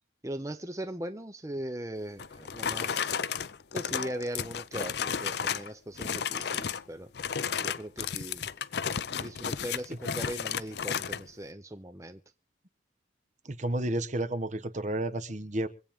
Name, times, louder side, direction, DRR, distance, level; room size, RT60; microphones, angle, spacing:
voice 1, 0.2-3.1 3.7-7.1 7.6-8.5 9.2-12.2, right 1 dB, 15° right, 8 dB, 0.7 m, -39 dB
sound 1, 2.2-5.7 6.0-6.8 7.1-11.2, left 7 dB, 60° left, 0.6 m, -33 dB
voice 2, 13.4-15.7, right 1 dB, 40° right, 11 dB, 1.1 m, -31 dB
25.0 x 8.8 x 3.6 m, 0.35 s
head